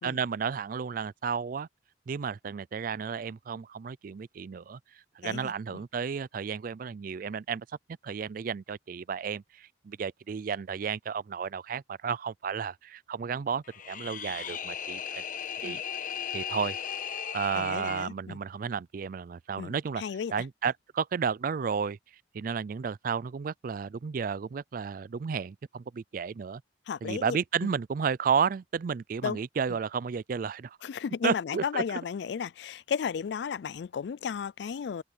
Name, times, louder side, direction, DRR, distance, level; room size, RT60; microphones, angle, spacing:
voice 1, 0.0-1.7 2.1-4.8 5.2-7.7 8.0-15.2 15.6-15.8 16.3-16.8 17.3-20.0 20.3-22.0 22.3-26.6 27.0-30.8 31.2-32.0, right 6 dB, 50° right, 0.4 m, -32 dB
voice 2, 5.2-5.8 15.6-15.8 17.6-18.4 19.6-20.3 26.9-27.4 29.2-29.4 30.8-35.0, left 6 dB, 65° left, 0.4 m, -34 dB
sound 1, 13.6-18.1, left 8 dB, 50° left, 1.1 m, -36 dB
head